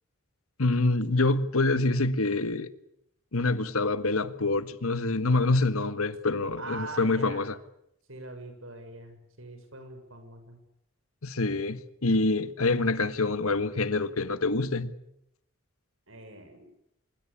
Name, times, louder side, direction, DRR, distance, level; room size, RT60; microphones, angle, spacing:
voice 1, 0.6-2.7 3.3-7.6 11.2-14.9, left 2 dB, 85° left, 1.6 m, -26 dB
voice 2, 6.6-7.5 8.1-10.6 16.1-16.7, right 3 dB, 70° right, 6.8 m, -43 dB
25.0 x 23.0 x 8.5 m
head